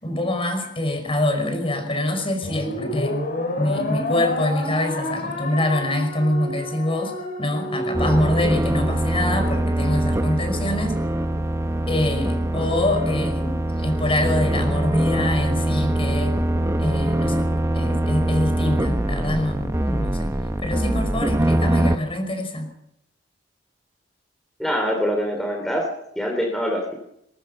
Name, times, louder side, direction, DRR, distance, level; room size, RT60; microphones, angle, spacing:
voice 1, 0.0-3.2 3.6-11.0 11.9-16.4 16.8-17.5 17.7-20.3 20.6-22.7, left 1 dB, 30° left, 6 dB, 5.4 m, -25 dB
sound 1, 2.4-9.0, left 1 dB, 50° left, 5.1 m, -29 dB
sound 2, 7.9-22.0, right 1 dB, 15° right, 0.9 m, -23 dB
voice 2, 24.6-25.9 26.1-26.9, equal, ahead, 1 dB, 3.3 m, -24 dB
22.5 x 21.5 x 5.6 m, 0.78 s
head